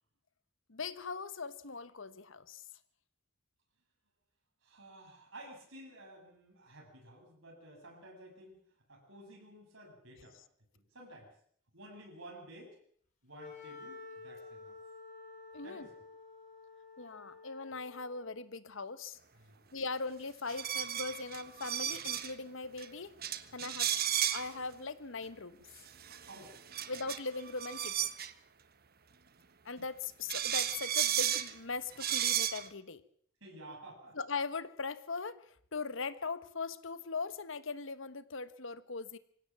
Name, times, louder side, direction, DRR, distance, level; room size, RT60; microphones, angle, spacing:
voice 1, 0.7-2.6 15.5-15.9 17.0-19.2 19.7-23.1 23.5-24.0 24.3-25.6 26.9-28.1 29.6-33.0 34.1-39.2, left 4 dB, 70° left, 14 dB, 1.3 m, -40 dB
voice 2, 4.6-8.6 8.9-10.4 10.7-11.3 11.7-12.8 13.2-14.8 15.6-15.9 19.4-19.6 23.4-23.6 26.1-26.6 33.4-34.2, right 1 dB, 75° right, -1 dB, 7.8 m, -53 dB
Wind instrument woodwind instrument, 13.4-18.5, left 4 dB, 40° left, 5.1 m, -51 dB
sound 1, 20.5-22.3 22.8-22.9 23.2-24.5 25.9-28.3 29.8-29.9 30.3-31.5 31.9-32.7, right 10 dB, 50° right, 1.3 m, -34 dB
25.0 x 16.5 x 7.5 m, 0.63 s
head